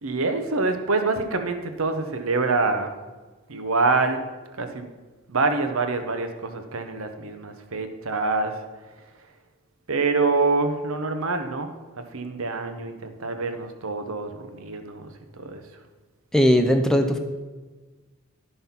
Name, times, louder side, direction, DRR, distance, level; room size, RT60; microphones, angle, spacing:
voice 1, 0.0-2.9 3.5-4.2 4.6-4.9 5.3-8.6 9.9-11.7 12.0-15.6, right 3 dB, 65° right, 7 dB, 0.9 m, -26 dB
voice 2, 16.3-17.2, equal, ahead, 5 dB, 0.5 m, -18 dB
11.0 x 5.6 x 5.8 m, 1.3 s
head